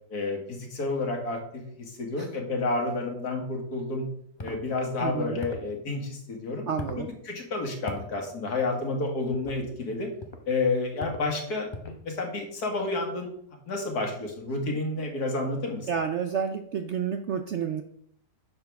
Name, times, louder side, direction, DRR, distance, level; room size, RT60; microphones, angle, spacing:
voice 1, 0.1-1.6 2.0-4.0 4.4-6.6 7.0-10.1 10.5-13.3 13.7-15.9, left 3 dB, 65° left, 2 dB, 2.3 m, -30 dB
sound 1, 4.4-4.6 5.4-5.7 6.8-7.1 7.9-8.1 9.3-9.6 10.2-10.5 11.0-11.3 11.7-12.0, left 2 dB, 25° left, 0.6 m, -38 dB
voice 2, 5.0-5.4 6.7-7.1 15.9-17.8, right 7 dB, 65° right, 7 dB, 0.7 m, -30 dB
10.5 x 6.8 x 3.5 m, 0.70 s
omnidirectional pair, 1.8 m